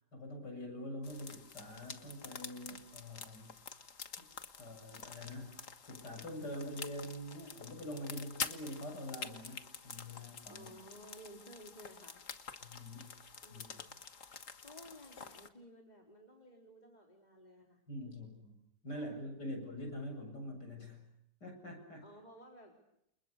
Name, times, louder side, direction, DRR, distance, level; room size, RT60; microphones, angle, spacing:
voice 1, 0.1-3.6 4.2-4.3 4.6-5.6 5.9-10.7 12.6-13.1 13.5-13.7 17.9-18.6 18.8-21.0 21.4-22.0, left 1 dB, 70° left, 4 dB, 8.3 m, -45 dB
sound 1, 1.0-15.5, left 5 dB, 50° left, 1.9 m, -48 dB
voice 2, 10.5-12.2 13.4-13.9 14.6-17.8 18.9-19.5 22.0-22.8, equal, 25° left, 1 dB, 4.0 m, -55 dB
29.5 x 29.5 x 6.8 m, 0.77 s
omnidirectional pair, 1.9 m